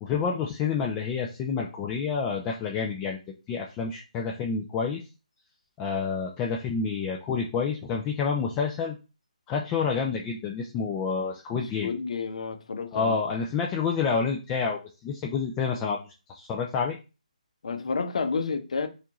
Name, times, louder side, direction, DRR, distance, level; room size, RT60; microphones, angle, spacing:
voice 1, 0.0-3.2 3.5-5.0 5.8-9.0 9.5-11.9 12.9-16.0 16.3-17.0, left 5 dB, 15° left, 0.4 m, -28 dB
voice 2, 11.8-13.3 17.6-18.9, left 4 dB, 55° left, 0.8 m, -30 dB
4.4 x 2.5 x 3.0 m
hypercardioid pair, 160°, 4 cm